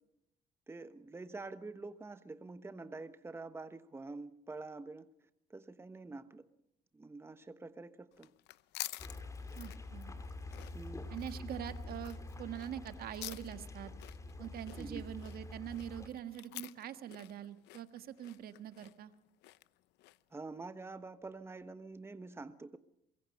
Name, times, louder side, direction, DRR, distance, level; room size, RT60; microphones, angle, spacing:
voice 1, 0.7-5.1 5.5-6.5 6.9-8.3 10.7-11.1 14.8-15.0 20.3-22.8, right 3 dB, 15° right, 1.1 m, -47 dB
sound 1, 8.1-20.4, left 18 dB, 85° left, 0.7 m, -50 dB
sound 2, 9.0-16.1, left 2 dB, 20° left, 2.9 m, -46 dB
voice 2, 9.5-10.1 11.1-13.9 14.4-19.1, right 10 dB, 65° right, 1.7 m, -44 dB
24.0 x 22.5 x 5.3 m
cardioid pair, 110°, 17 cm